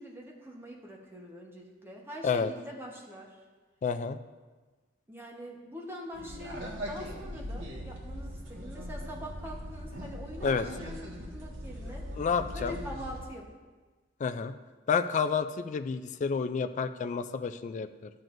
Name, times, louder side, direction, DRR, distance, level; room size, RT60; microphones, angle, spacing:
voice 1, 0.0-3.4 5.1-12.1 12.5-13.5, equal, 10° right, -1 dB, 1.1 m, -44 dB
voice 2, 3.8-4.2 10.4-10.7 12.2-12.7 14.2-14.5 14.9-18.1, left 5 dB, 40° left, 10 dB, 0.3 m, -30 dB
sound 1, 6.1-13.2, equal, 80° right, 1.5 m, -40 dB
12.0 x 7.6 x 2.6 m, 1.3 s
head